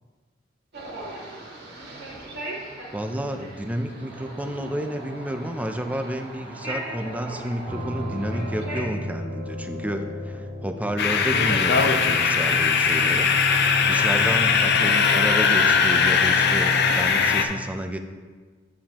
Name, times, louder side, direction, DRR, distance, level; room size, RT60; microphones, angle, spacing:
sound 1, 0.7-8.8, right 1 dB, 55° right, 1.9 m, -38 dB
voice 1, 2.9-13.3 13.9-18.0, equal, 10° right, 6 dB, 0.5 m, -30 dB
sound 2, 7.7-17.2, left 1 dB, 75° right, 2.1 m, -37 dB
sound 3, 11.0-17.5, left 5 dB, 60° left, 0.6 m, -20 dB
8.7 x 7.4 x 2.9 m, 1.4 s
head